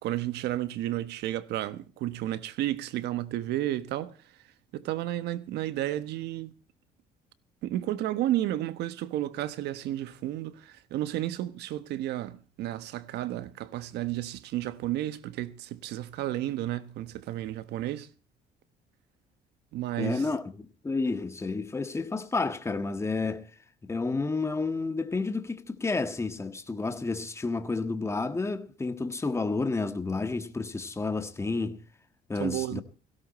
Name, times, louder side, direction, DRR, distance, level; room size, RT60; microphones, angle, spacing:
voice 1, 0.0-4.2 4.7-6.5 7.6-18.1 19.7-20.3 32.4-32.8, right 14 dB, 80° right, 1.3 m, -32 dB
voice 2, 20.0-23.5 23.8-31.8 32.3-32.8, left 3 dB, 15° left, 1.5 m, -30 dB
17.5 x 17.0 x 4.3 m
cardioid pair, 110°, 17 cm